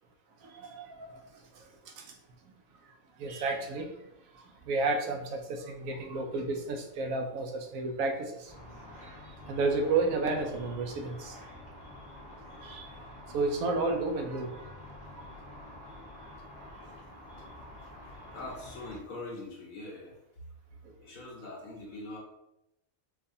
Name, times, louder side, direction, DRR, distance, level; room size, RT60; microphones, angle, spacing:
voice 1, 0.4-1.2 2.0-2.1 3.2-3.9 4.7-8.5 9.5-11.4 12.6-12.9 13.3-14.7, right 3 dB, 80° right, 4 dB, 1.0 m, -31 dB
Car / Traffic noise roadway noise / Engine, 8.5-19.0, left 1 dB, 30° left, 1.5 m, -48 dB
voice 2, 18.3-20.2 21.0-22.2, left 2 dB, 85° left, -2 dB, 1.4 m, -42 dB
4.6 x 2.5 x 2.6 m, 0.85 s
omnidirectional pair, 1.4 m